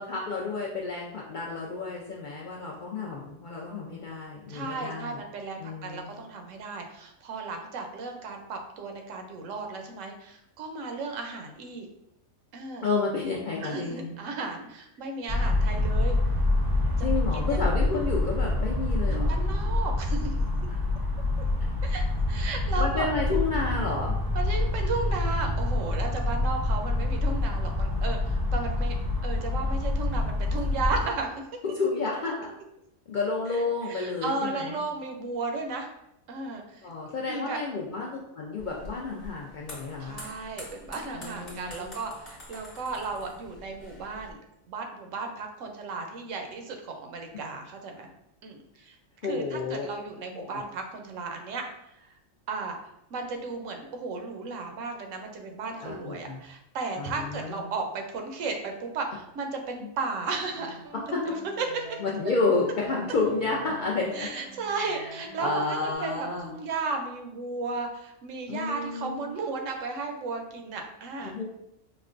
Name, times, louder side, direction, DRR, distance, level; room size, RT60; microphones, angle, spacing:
voice 1, 0.0-5.2 5.6-6.1 12.8-14.1 17.0-19.4 21.6-21.7 22.8-24.1 31.6-32.5 33.1-34.8 36.8-40.2 41.1-41.9 49.2-49.9 50.3-50.6 55.8-56.4 57.0-57.6 60.9-61.4 62.0-64.3 64.8-65.1 65.4-66.5 68.5-69.3 71.2-71.4, left 3 dB, 65° left, -3 dB, 0.5 m, -31 dB
voice 2, 4.5-11.9 12.5-12.9 13.6-16.2 17.0-17.1 17.3-17.6 19.1-20.4 21.8-23.1 24.3-28.9 29.2-31.3 33.9-35.9 36.3-36.9 37.3-37.6 40.0-44.4 44.7-48.1 48.4-49.0 49.2-51.6 51.9-52.1 52.5-52.8 53.1-60.8 61.3-62.0 64.1-71.3, right 3 dB, 85° right, 4 dB, 1.0 m, -34 dB
sound 1, 15.3-31.1, left 2 dB, 30° right, 0.4 m, -26 dB
sound 2, 38.6-44.3, left 1 dB, 35° left, 0.9 m, -46 dB
sound 3, 60.5-66.0, right 1 dB, 65° right, 0.7 m, -46 dB
5.0 x 2.1 x 2.4 m, 0.82 s
omnidirectional pair, 1.3 m